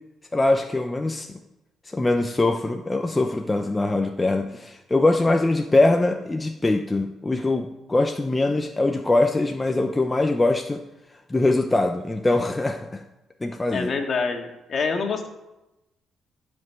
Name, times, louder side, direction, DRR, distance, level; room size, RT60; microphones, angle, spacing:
voice 1, 0.3-1.3 1.8-10.8 11.3-13.0 13.4-13.9, left 2 dB, 20° left, 5 dB, 0.7 m, -22 dB
voice 2, 13.7-15.3, left 4 dB, 50° left, 3 dB, 1.9 m, -26 dB
13.0 x 5.3 x 7.6 m, 0.97 s
cardioid pair, 90°, 0 cm